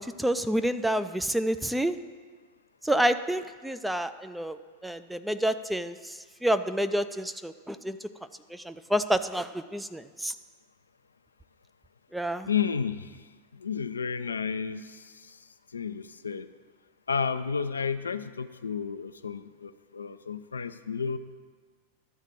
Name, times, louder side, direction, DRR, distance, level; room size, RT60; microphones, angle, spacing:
voice 1, 0.2-1.9 2.8-4.6 4.8-5.9 6.4-8.0 8.7-10.3 12.1-12.5, right 1 dB, 5° right, 10 dB, 0.4 m, -28 dB
voice 2, 12.5-13.2 13.5-15.4 15.7-16.5 17.1-21.2, left 6 dB, 75° left, 11 dB, 0.4 m, -32 dB
12.0 x 4.0 x 7.0 m, 1.5 s
figure-of-eight pair, 90°, 0 cm